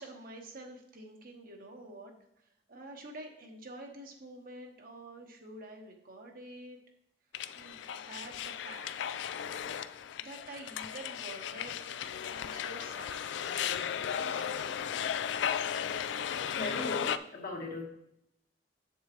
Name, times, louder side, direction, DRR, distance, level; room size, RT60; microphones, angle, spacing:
voice 1, 0.0-2.1 2.7-6.8 7.5-9.2 10.2-11.7 12.2-13.6 13.9-14.7, right 2 dB, 55° right, 2 dB, 1.1 m, -48 dB
sound 1, 7.3-17.2, left 8 dB, 80° left, 0.3 m, -35 dB
voice 2, 16.6-17.9, left 2 dB, 55° left, 1 dB, 1.4 m, -38 dB
7.3 x 7.0 x 3.0 m, 0.77 s
head